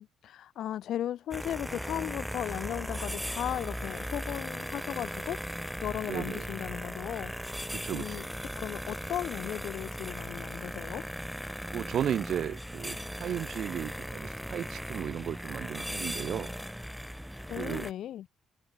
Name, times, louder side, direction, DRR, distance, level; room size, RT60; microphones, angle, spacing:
voice 1, 0.0-5.4 5.8-7.3 7.9-8.3 8.6-11.0 17.5-18.3, left 11 dB, 75° left, 0.6 m, -36 dB
sound 1, 1.3-17.9, equal, ahead, 0.6 m, -38 dB
voice 2, 6.1-6.5 7.7-8.3 11.7-16.5 17.6-17.9, right 9 dB, 65° right, 1.2 m, -35 dB
cardioid pair, 90°, 0 cm